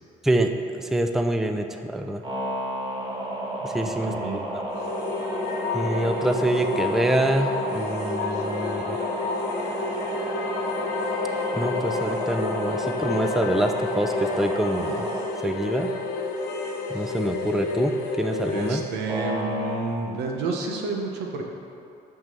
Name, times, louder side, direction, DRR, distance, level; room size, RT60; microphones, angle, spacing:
voice 1, 0.2-2.2 3.6-4.7 5.7-9.0 11.5-15.1 15.4-15.9 16.9-18.8, right 1 dB, ahead, 6 dB, 0.4 m, -26 dB
sound 1, 2.2-15.3 19.1-19.8, right 1 dB, 30° right, 1.6 m, -32 dB
voice 2, 3.8-4.5 18.5-21.4, right 3 dB, 85° right, 1 dB, 1.1 m, -30 dB
sound 2, 4.7-18.9, left 4 dB, 75° left, 1.0 m, -30 dB
6.2 x 6.1 x 6.8 m, 2.6 s
cardioid pair, 110°, 17 cm